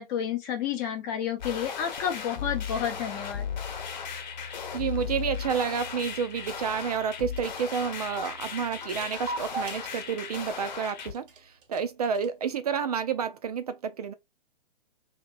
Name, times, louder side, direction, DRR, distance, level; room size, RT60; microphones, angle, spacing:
voice 1, 0.0-3.5, left 9 dB, 20° left, 0.6 m, -30 dB
sound 1, 1.4-11.1, left 7 dB, 50° left, 0.9 m, -36 dB
sound 2, 2.0-11.6, left 4 dB, 80° left, 0.7 m, -49 dB
voice 2, 4.7-14.1, right 7 dB, 45° right, 0.4 m, -30 dB
sound 3, 5.3-12.5, right 2 dB, 65° right, 0.9 m, -42 dB
2.9 x 2.8 x 2.2 m
hypercardioid pair, 135°, 29 cm